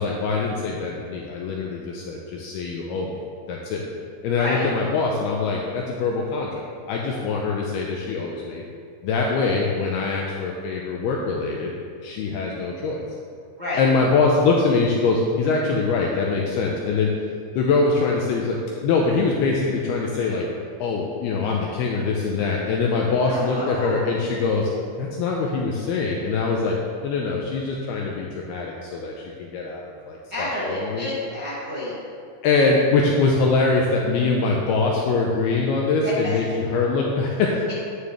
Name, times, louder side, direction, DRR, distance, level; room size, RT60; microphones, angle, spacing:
voice 1, 0.0-3.2 3.5-3.9 4.2-8.6 9.0-11.7 12.0-13.0 13.8-17.1 17.6-20.5 20.8-24.7 25.0-26.8 27.0-29.8 30.1-31.1 32.4-37.5, left 4 dB, 90° left, -1 dB, 2.3 m, -23 dB
voice 2, 23.1-24.0 30.3-31.9 36.0-36.3 37.6-37.7, left 1 dB, 50° right, -11 dB, 1.3 m, -29 dB
11.0 x 9.2 x 3.3 m, 2.3 s
omnidirectional pair, 5.3 m